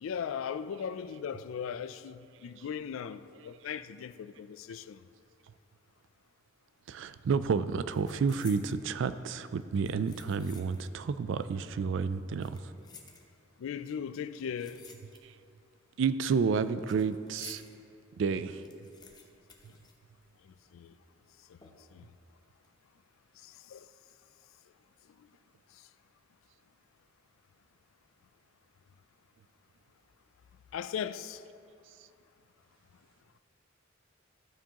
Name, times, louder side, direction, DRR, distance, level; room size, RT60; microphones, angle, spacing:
voice 1, 0.0-5.0 13.6-14.9 20.4-21.0 21.4-22.1 23.3-23.9 25.0-25.3 25.7-25.9 30.7-31.5, left 7 dB, 85° left, 0.3 m, -39 dB
sound 1, 6.9-7.1 7.4-8.8 9.6-11.0 11.3-11.4 12.2-13.6 14.3-15.5 15.8-17.7 18.1-18.2 18.4-20.6 20.8-20.9 21.6-22.0 22.4-22.7, left 5 dB, 20° left, 0.7 m, -54 dB
voice 2, 6.9-12.6 16.0-17.6 18.2-18.6, right 5 dB, 65° right, 0.3 m, -30 dB
13.0 x 7.1 x 2.9 m
head